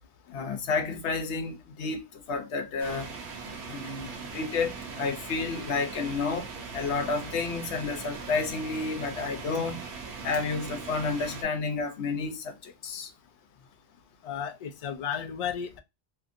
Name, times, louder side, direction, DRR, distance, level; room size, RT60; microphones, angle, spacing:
voice 1, 0.3-2.0 2.3-3.1 3.7-6.5 6.7-9.8 10.2-13.1, left 4 dB, 80° left, 1.0 m, -31 dB
sound 1, 2.8-11.4, right 5 dB, 80° right, 0.9 m, -40 dB
voice 2, 14.2-15.8, left 8 dB, 60° left, 0.4 m, -33 dB
2.8 x 2.6 x 2.5 m
omnidirectional pair, 1.1 m